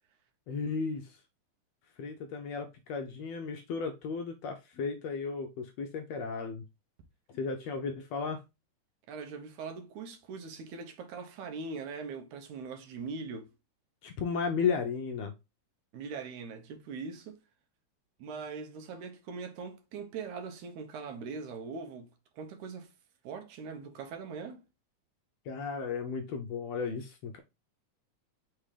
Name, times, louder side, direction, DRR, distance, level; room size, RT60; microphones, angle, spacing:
voice 1, 0.5-1.2 2.0-6.7 7.3-8.4 14.0-15.3 25.4-27.4, left 5 dB, 75° left, 1.6 m, -34 dB
voice 2, 9.1-13.5 15.9-17.4 18.2-22.1 22.3-22.9 23.2-24.6, right 5 dB, 75° right, 2.3 m, -41 dB
5.8 x 3.4 x 4.8 m
omnidirectional pair, 3.5 m